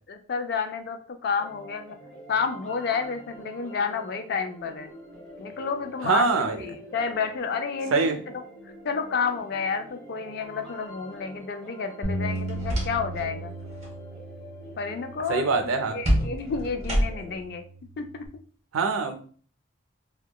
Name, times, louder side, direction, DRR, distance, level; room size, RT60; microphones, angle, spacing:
voice 1, 0.1-2.0 2.3-4.9 5.4-8.1 8.8-13.5 14.8-15.5 15.9-17.6 18.0-18.2, left 5 dB, 50° left, 6 dB, 0.3 m, -30 dB
sound 1, 1.4-17.4, equal, 5° left, 0.8 m, -46 dB
voice 2, 6.0-6.6 7.9-8.2 15.3-16.0 18.7-19.2, right 4 dB, 85° right, 7 dB, 0.4 m, -23 dB
Bass guitar, 12.0-16.5 17.1-18.3, right 1 dB, 75° left, 0.7 m, -36 dB
sound 2, 12.3-13.3 13.6-14.0 16.0-17.4, equal, 35° right, 0.8 m, -27 dB
2.8 x 2.1 x 2.2 m, 0.43 s
head